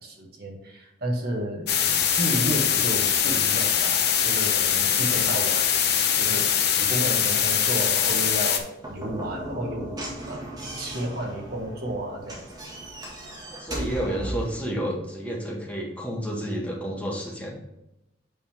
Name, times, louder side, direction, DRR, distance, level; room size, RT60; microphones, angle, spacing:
voice 1, 0.0-5.7 6.2-10.0 10.3-10.4 10.8-12.4, right 1 dB, 55° right, 0 dB, 1.6 m, -32 dB
sound 1, 1.7-8.6, left 8 dB, 55° left, 0.8 m, -22 dB
Slam / Knock, 8.8-14.6, right 1 dB, 20° right, 1.8 m, -36 dB
voice 2, 13.5-17.6, right 1 dB, 5° left, -3 dB, 1.6 m, -30 dB
8.4 x 5.3 x 3.5 m, 0.92 s
head